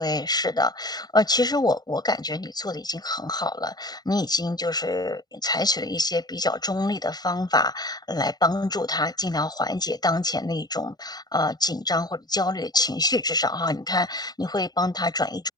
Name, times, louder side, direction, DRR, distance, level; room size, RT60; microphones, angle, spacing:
voice 1, 0.0-15.5, left 2 dB, 15° left, 7.0 m, -25 dB
open air
cardioid pair, 90°, 30 cm